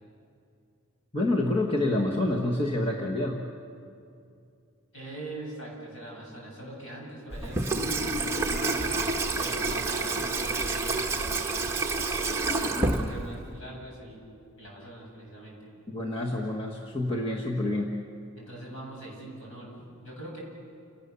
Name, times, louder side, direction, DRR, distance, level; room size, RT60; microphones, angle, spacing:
voice 1, 1.1-3.5 15.9-18.0, left 1 dB, 25° left, -2 dB, 1.4 m, -28 dB
voice 2, 4.9-8.9 9.4-11.9 12.2-14.2 14.6-15.6 18.4-19.7 20.0-20.4, right 1 dB, 60° left, -3 dB, 8.0 m, -42 dB
Water tap faucet / Sink (filling or washing), 7.3-13.6, right 3 dB, 10° right, 1.3 m, -28 dB
29.0 x 18.5 x 7.0 m, 2.5 s
head